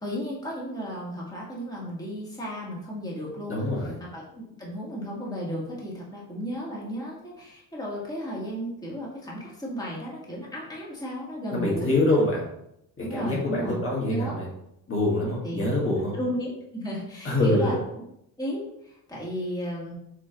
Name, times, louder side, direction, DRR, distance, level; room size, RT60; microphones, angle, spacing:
voice 1, 0.0-3.6 4.1-12.2 13.0-13.8 14.1-14.4 15.4-15.7 16.1-17.8 18.4-19.9, equal, 10° left, -5 dB, 1.9 m, -34 dB
voice 2, 3.5-4.0 11.5-12.5 13.0-14.5 14.9-16.1 17.2-17.8, left 2 dB, 35° left, -4 dB, 1.8 m, -25 dB
7.5 x 3.2 x 3.9 m, 0.79 s
cardioid pair, 120°, 36 cm